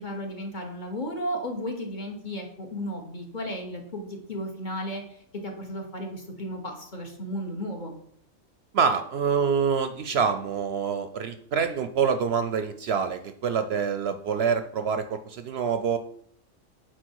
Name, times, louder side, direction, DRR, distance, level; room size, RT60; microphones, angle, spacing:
voice 1, 0.0-5.0 5.4-7.9, equal, 40° left, 2 dB, 1.4 m, -34 dB
voice 2, 8.7-16.0, right 6 dB, 65° right, 9 dB, 0.8 m, -26 dB
8.8 x 4.5 x 4.6 m, 0.64 s
omnidirectional pair, 1.3 m